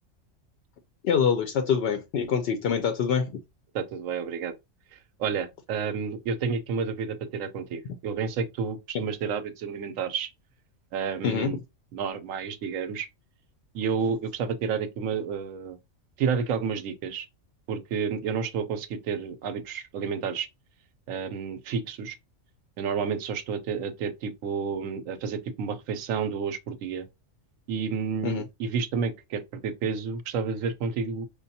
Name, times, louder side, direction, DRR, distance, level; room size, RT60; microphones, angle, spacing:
voice 1, 1.0-3.4 11.2-11.5 28.2-28.4, left 7 dB, 65° left, 0.6 m, -25 dB
voice 2, 3.7-4.5 4.9-10.3 10.9-11.6 11.9-13.1 13.7-15.8 16.2-17.3 17.7-20.5 21.1-22.2 22.8-27.1 27.7-31.3, right 6 dB, 90° right, 1.0 m, -30 dB
5.1 x 2.3 x 2.6 m
omnidirectional pair, 1.3 m